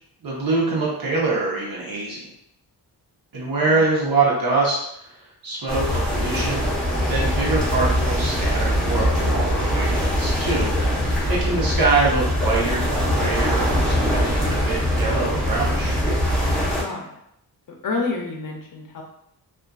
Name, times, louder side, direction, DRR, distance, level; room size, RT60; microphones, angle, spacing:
voice 1, 0.2-2.3 3.3-5.1 5.4-6.6 7.1-10.7 11.0-12.9 13.2-16.0, right 3 dB, 60° right, -4 dB, 0.9 m, -24 dB
sound 1, 5.7-16.8, equal, ahead, 0.7 m, -22 dB
voice 2, 16.8-17.2 17.8-19.0, left 3 dB, 55° left, 0 dB, 0.5 m, -29 dB
2.5 x 2.4 x 2.3 m, 0.74 s
wide cardioid pair, 155°, 39 cm